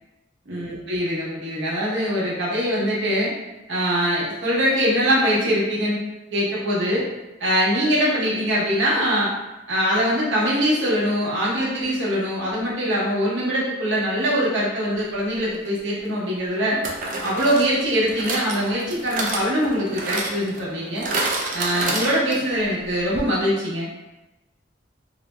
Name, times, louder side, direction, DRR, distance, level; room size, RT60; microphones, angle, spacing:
voice 1, 0.5-3.3 3.7-6.0 6.3-7.0 7.4-9.3 9.7-16.8 17.2-21.1 21.5-23.9, equal, 65° right, -6 dB, 0.9 m, -22 dB
sound 1, 15.5-15.7 16.8-22.6 22.9-23.0 23.2-23.3, right 2 dB, 40° right, 0.4 m, -29 dB
2.6 x 2.0 x 3.1 m, 1.0 s
head